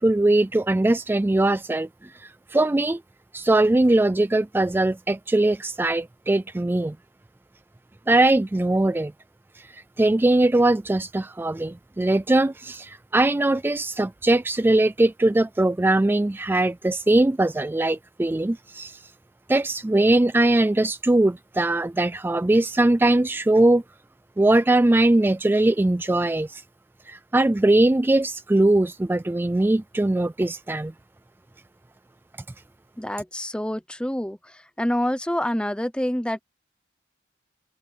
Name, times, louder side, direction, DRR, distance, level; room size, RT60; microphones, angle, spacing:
voice 1, 0.0-3.0 3.3-7.0 8.1-9.1 9.6-19.1 19.5-23.8 24.4-26.6 27.1-30.9, right 2 dB, 10° right, 0.3 m, -21 dB
voice 2, 33.0-34.4 34.8-36.4, left 1 dB, 5° left, 0.9 m, -26 dB
open air
head